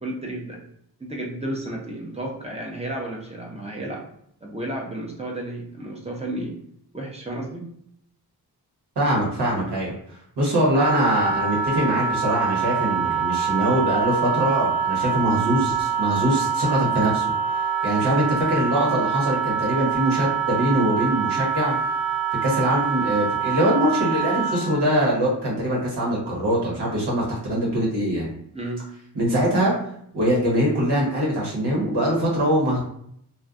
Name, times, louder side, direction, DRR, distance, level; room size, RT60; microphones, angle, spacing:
voice 1, 0.0-0.6 1.0-4.1 4.4-6.5 6.9-7.7 28.5-28.9, right 1 dB, 15° right, -1 dB, 0.4 m, -32 dB
voice 2, 9.0-9.9 10.4-17.2 17.8-21.8 22.4-28.3 29.1-29.7 30.1-32.8, right 1 dB, 80° right, -4 dB, 1.1 m, -22 dB
Wind instrument woodwind instrument, 10.7-24.8, right 6 dB, 65° right, 0.6 m, -25 dB
2.5 x 2.1 x 2.4 m, 0.70 s
wide cardioid pair, 120°, 40 cm